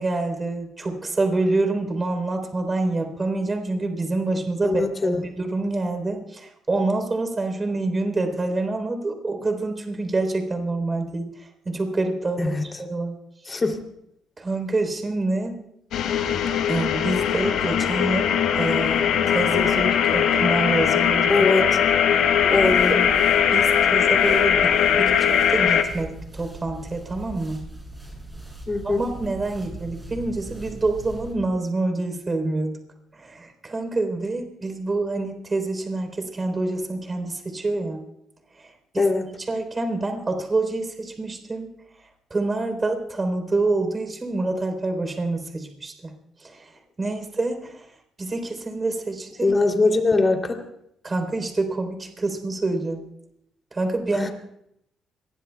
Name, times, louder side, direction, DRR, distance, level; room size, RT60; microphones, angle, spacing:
voice 1, 0.0-11.3 11.7-13.1 14.4-15.6 16.7-21.3 22.6-23.0 23.5-27.6 28.8-32.8 33.2-38.0 38.9-39.0 39.5-41.7 42.3-46.1 46.4-46.7 47.0-47.9 48.2-49.5 51.0-53.1 53.7-54.3, right 2 dB, 30° right, 5 dB, 3.7 m, -27 dB
voice 2, 4.6-5.2 12.4-12.6 13.5-13.9 21.3-21.8 22.5-23.0 28.7-29.0 39.0-39.4 49.4-50.6 54.1-54.3, left 3 dB, 30° left, 3 dB, 2.9 m, -22 dB
sound 1, 15.9-25.8, left 8 dB, 80° left, 1.2 m, -20 dB
sound 2, 22.3-31.3, right 2 dB, 10° right, 7.3 m, -40 dB
26.5 x 21.0 x 2.3 m, 0.77 s
cardioid pair, 90°, 0 cm